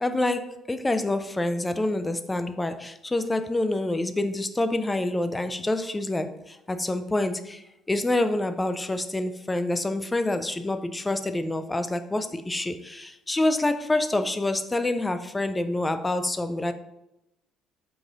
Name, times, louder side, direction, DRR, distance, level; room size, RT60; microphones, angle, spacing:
voice 1, 0.0-16.7, left 2 dB, 15° left, 9 dB, 0.4 m, -27 dB
4.8 x 2.5 x 3.8 m, 0.87 s
hypercardioid pair, 60°, 0 cm